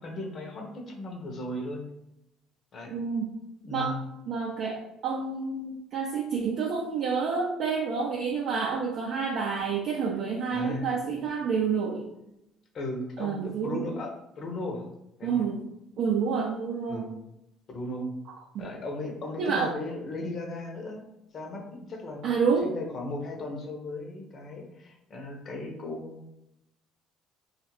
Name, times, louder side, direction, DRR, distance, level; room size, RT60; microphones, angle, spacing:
voice 1, 0.0-1.8 2.7-3.0 3.6-4.0 10.5-10.9 12.7-14.9 15.2-15.4 16.9-17.1 17.7-18.1 18.6-21.1 21.3-22.2 22.6-26.4, left 2 dB, 50° left, 1 dB, 0.7 m, -36 dB
voice 2, 2.9-3.3 3.7-3.9 4.3-12.1 13.2-13.8 15.2-15.6 16.0-17.0 18.5-18.7 19.4-19.7 22.2-22.7, right 5 dB, 60° right, -3 dB, 0.5 m, -28 dB
2.3 x 2.0 x 3.1 m, 0.82 s
hypercardioid pair, 60°, 0 cm